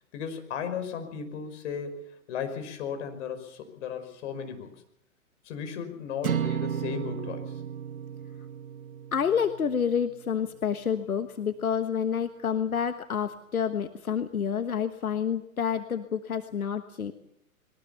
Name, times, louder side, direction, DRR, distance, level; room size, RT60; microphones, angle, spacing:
voice 1, 0.1-4.7 5.4-7.6, left 7 dB, 55° left, 8 dB, 5.4 m, -36 dB
sound 1, 6.2-10.6, right 9 dB, 80° right, 2.3 m, -34 dB
voice 2, 9.1-17.1, left 7 dB, 90° left, 9 dB, 1.4 m, -28 dB
22.0 x 19.5 x 7.0 m, 0.74 s
hypercardioid pair, 125°, 42 cm